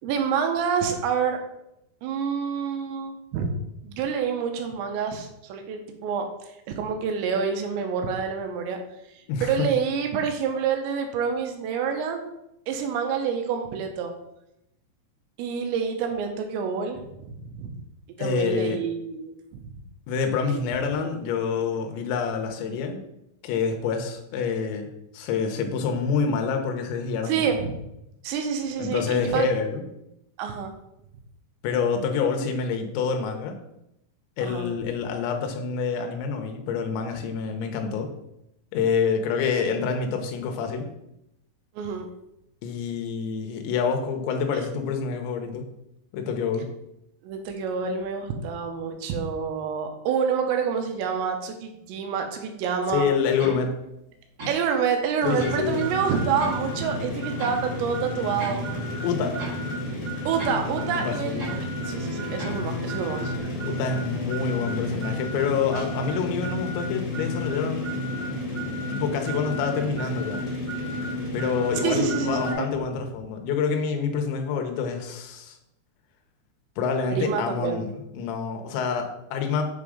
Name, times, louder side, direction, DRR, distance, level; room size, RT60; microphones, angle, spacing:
voice 1, 0.0-1.4 2.0-12.2 12.7-14.1 15.4-17.9 18.2-19.7 20.5-20.6 27.3-27.8 28.2-29.5 30.4-30.7 34.4-34.7 41.7-42.1 44.5-44.7 47.2-53.1 54.5-58.6 60.2-63.3 64.9-65.0 71.8-72.7 77.1-77.9, right 6 dB, 85° right, 5 dB, 3.1 m, -28 dB
voice 2, 9.3-9.7 18.2-18.8 20.1-23.0 23.4-27.6 28.8-29.8 31.6-33.5 34.4-38.1 38.7-40.9 42.6-45.7 46.1-46.7 52.9-53.7 55.2-55.8 59.0-59.4 60.9-61.5 63.6-67.9 68.9-70.4 71.3-75.6 76.8-77.9 78.1-79.6, left 6 dB, 80° left, 4 dB, 3.1 m, -27 dB
sound 1, 53.4-53.6 54.4-54.6 55.4-55.6 56.4-56.6 57.4-57.6 58.4-58.6 59.4-59.6 60.4-60.6 61.4-61.6 62.4-62.6, equal, 50° right, 1.1 m, -36 dB
sound 2, 55.2-72.5, left 1 dB, 30° left, 1.9 m, -31 dB
7.8 x 3.7 x 4.9 m, 0.84 s
omnidirectional pair, 5.3 m